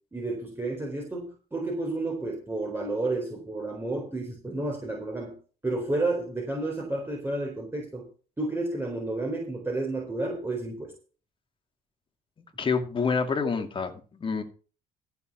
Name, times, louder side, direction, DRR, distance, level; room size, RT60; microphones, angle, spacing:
voice 1, 0.1-5.4 5.6-8.1 8.4-10.9, right 2 dB, 15° right, 0 dB, 4.3 m, -31 dB
voice 2, 12.6-14.4, left 5 dB, 30° left, 6 dB, 2.4 m, -27 dB
14.5 x 7.0 x 6.0 m, 0.37 s
cardioid pair, 110°, 17 cm